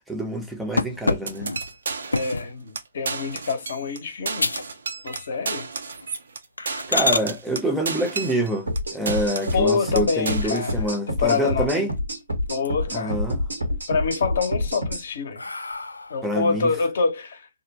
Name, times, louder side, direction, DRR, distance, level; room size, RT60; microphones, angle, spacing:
voice 1, 0.0-1.5 6.9-11.9 12.9-13.4 16.2-16.7, right 1 dB, 5° right, 0.6 m, -26 dB
sound 1, 0.8-2.6 3.1-3.4 3.9-4.0 4.4-4.7 5.0-5.6 5.9-6.1 6.6-7.3 9.3-10.0 10.4-10.5 10.9-11.0 11.3-12.1 12.5-13.1 13.5-14.1 14.6-16.3, left 3 dB, 90° left, 0.3 m, -29 dB
sound 2, 1.3-2.4 2.7-2.8 3.0-4.0 4.2-8.8 9.1-9.6 9.9-10.8, right 4 dB, 70° right, 0.4 m, -32 dB
voice 2, 2.1-4.5 5.0-5.7 9.5-11.9 12.5-13.2 13.9-15.4 16.1-17.5, left 4 dB, 65° left, 0.7 m, -26 dB
sound 3, 8.7-15.0, left 1 dB, 90° right, 1.2 m, -27 dB
2.5 x 2.1 x 2.7 m
figure-of-eight pair, 125°, 0 cm